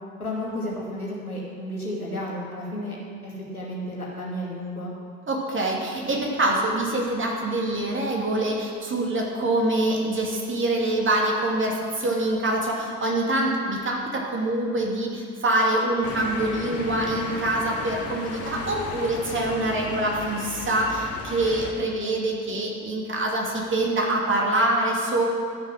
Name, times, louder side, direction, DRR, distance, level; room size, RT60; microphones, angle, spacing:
voice 1, 0.2-3.0 3.2-4.9, left 1 dB, 90° left, -4 dB, 1.8 m, -32 dB
voice 2, 5.3-25.2, right 1 dB, 30° right, -1 dB, 2.4 m, -25 dB
sound 1, 16.0-21.7, left 3 dB, 35° left, 1.6 m, -35 dB
13.5 x 6.7 x 6.4 m, 2.2 s
figure-of-eight pair, 55°, 42 cm